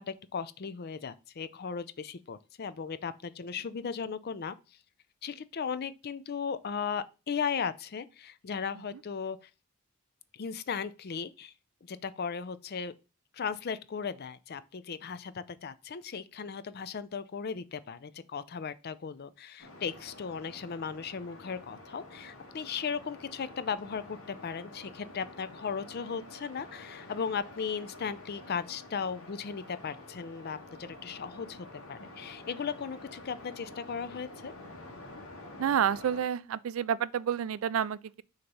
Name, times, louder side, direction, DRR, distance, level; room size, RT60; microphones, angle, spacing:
voice 1, 0.0-4.6 5.2-9.4 10.3-11.5 11.9-12.9 13.3-34.5, left 6 dB, 50° left, 0.5 m, -37 dB
sound 1, 19.6-36.2, left 2 dB, 75° left, 1.7 m, -49 dB
voice 2, 35.6-38.2, right 8 dB, 75° right, 0.3 m, -29 dB
6.5 x 3.0 x 5.3 m
head